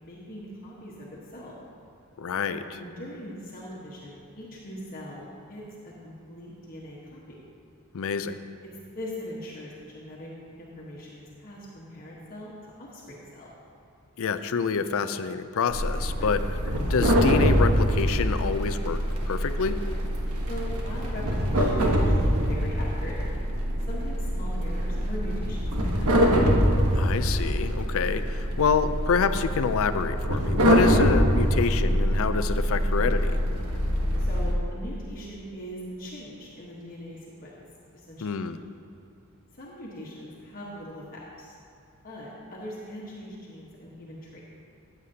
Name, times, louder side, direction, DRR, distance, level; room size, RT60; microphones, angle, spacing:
voice 1, 0.0-1.5 2.7-5.6 6.0-7.2 8.9-10.3 10.6-12.5 12.8-13.5 16.2-16.5 20.5-23.2 23.8-26.3 34.2-37.6 37.9-38.2 39.6-41.6 42.0-44.4, equal, 40° left, -6 dB, 1.3 m, -41 dB
voice 2, 2.2-2.8 7.9-8.4 14.2-16.4 16.9-19.8 26.9-33.4 38.2-38.6, left 5 dB, 65° left, 11 dB, 0.4 m, -27 dB
sound 1, 15.7-34.5, equal, 75° right, 1.2 m, -24 dB
14.0 x 8.2 x 2.8 m, 2.6 s
head